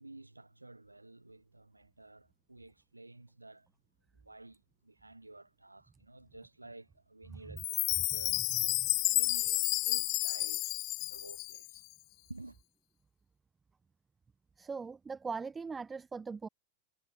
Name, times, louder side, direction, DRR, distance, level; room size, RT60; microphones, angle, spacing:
voice 1, 0.0-3.7 4.1-8.4 9.0-11.8 12.3-12.6, right 2 dB, 85° right, 3.7 m, -52 dB
Chime, 7.6-11.8, left 21 dB, 40° left, 0.6 m, -31 dB
voice 2, 8.5-8.9 14.6-16.5, right 5 dB, 15° right, 1.7 m, -41 dB
figure-of-eight pair, 90°, 0 cm